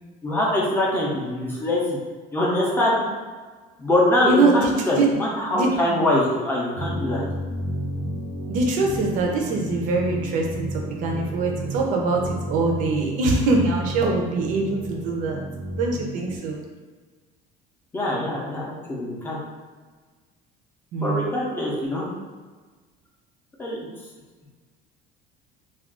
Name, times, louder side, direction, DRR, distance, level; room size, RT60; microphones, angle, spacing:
voice 1, 0.2-2.0 2.3-3.0 3.8-7.2 17.9-19.4 21.0-22.1 23.6-23.9, left 1 dB, 10° left, -4 dB, 0.5 m, -23 dB
voice 2, 4.2-4.6 4.9-5.1 5.5-5.7 8.5-15.4 15.7-16.6 20.9-21.3, right 3 dB, 50° right, 0 dB, 0.5 m, -23 dB
sound 1, 6.7-16.4, right 1 dB, 85° right, 0.7 m, -32 dB
2.4 x 2.3 x 3.5 m, 1.4 s
cardioid pair, 170°, 18 cm